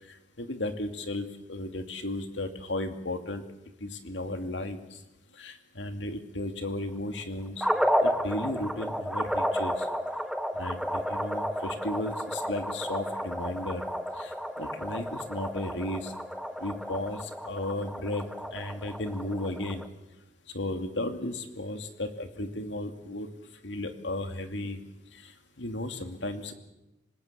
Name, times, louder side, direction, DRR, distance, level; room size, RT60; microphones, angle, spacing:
voice 1, 0.1-3.4 3.8-5.0 5.3-7.7 8.0-9.9 10.5-13.8 14.2-16.1 16.6-18.2 18.5-19.8 20.5-23.3 23.6-24.8 25.1-26.5, left 1 dB, 90° left, 7 dB, 2.5 m, -35 dB
sound 1, 7.6-19.9, equal, ahead, 1.1 m, -32 dB
26.0 x 19.5 x 8.5 m, 0.97 s
head